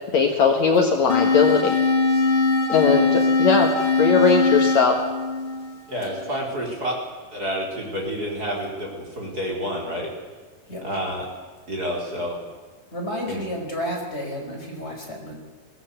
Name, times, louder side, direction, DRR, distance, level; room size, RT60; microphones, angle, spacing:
voice 1, 0.1-1.8 2.7-3.7 4.0-5.0, left 5 dB, 60° left, 3 dB, 2.8 m, -19 dB
sound 1, 1.1-6.1, left 3 dB, 40° left, 3.2 m, -21 dB
voice 2, 5.9-6.9 7.3-10.1 10.8-11.2 11.7-12.4 13.3-13.4, equal, 25° right, -2 dB, 5.0 m, -29 dB
voice 3, 12.9-15.3, equal, 15° left, -1 dB, 5.4 m, -31 dB
22.0 x 17.5 x 8.2 m, 1.5 s
omnidirectional pair, 3.9 m